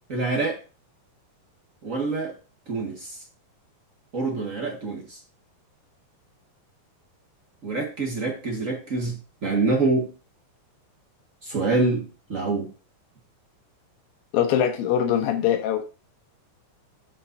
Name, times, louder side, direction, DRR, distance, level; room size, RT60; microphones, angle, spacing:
voice 1, 0.1-0.6 1.8-2.3 2.7-3.2 4.1-5.2 7.6-10.1 11.4-12.7, right 3 dB, 55° right, 0.8 m, -26 dB
voice 2, 14.3-15.8, left 9 dB, 85° left, 3.0 m, -22 dB
14.5 x 5.5 x 2.6 m
omnidirectional pair, 4.1 m